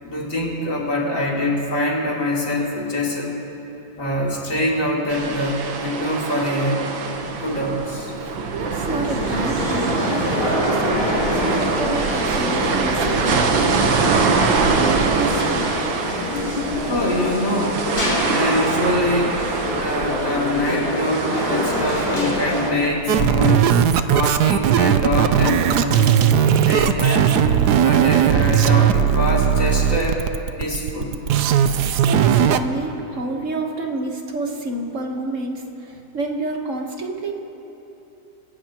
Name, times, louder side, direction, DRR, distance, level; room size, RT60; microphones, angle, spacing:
voice 1, 0.0-3.4 4.0-6.8 7.4-8.1 16.8-17.9 18.3-19.4 19.7-23.6 24.1-26.1 26.6-27.3 27.8-30.2 30.6-31.2, left 1 dB, 45° left, -5 dB, 3.3 m, -24 dB
sound 1, 5.1-22.7, right 4 dB, 85° right, 1.8 m, -24 dB
voice 2, 8.5-10.0 10.5-15.7 26.6-26.7 31.8-37.3, right 2 dB, 45° right, 2 dB, 1.5 m, -29 dB
sound 2, 8.9-22.9, left 2 dB, 60° left, 3.2 m, -26 dB
sound 3, 23.1-32.6, right 9 dB, 70° right, 1.1 m, -17 dB
29.5 x 16.0 x 3.0 m, 3.0 s
omnidirectional pair, 2.0 m